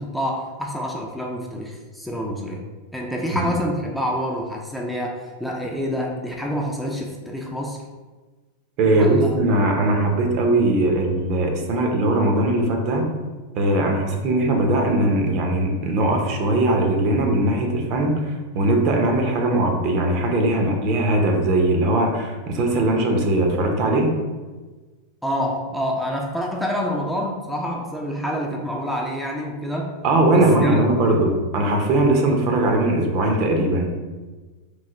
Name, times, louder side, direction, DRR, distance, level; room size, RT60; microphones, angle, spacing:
voice 1, 0.0-2.6 2.9-7.8 8.9-9.4 25.2-29.9 30.3-30.8, equal, ahead, -1 dB, 0.4 m, -27 dB
voice 2, 8.8-13.1 13.6-24.2 30.0-33.9, right 1 dB, 50° right, 2 dB, 0.6 m, -20 dB
3.1 x 2.0 x 3.6 m, 1.3 s
hypercardioid pair, 120°, 0 cm